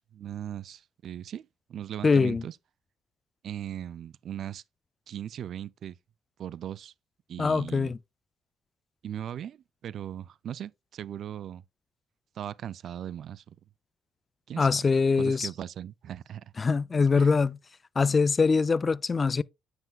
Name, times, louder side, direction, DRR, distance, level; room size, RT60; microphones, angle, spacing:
voice 1, 0.0-2.6 3.4-4.6 5.1-6.0 6.4-6.9 7.3-7.9 9.0-11.6 12.3-13.6 14.5-14.8 15.2-16.5 17.2-17.3, right 10 dB, 65° right, 0.3 m, -38 dB
voice 2, 2.0-2.4 7.4-8.0 14.6-15.5 16.6-17.5 18.0-19.4, left 4 dB, 35° left, 0.3 m, -23 dB
9.2 x 7.9 x 2.3 m
cardioid pair, 90°, 0 cm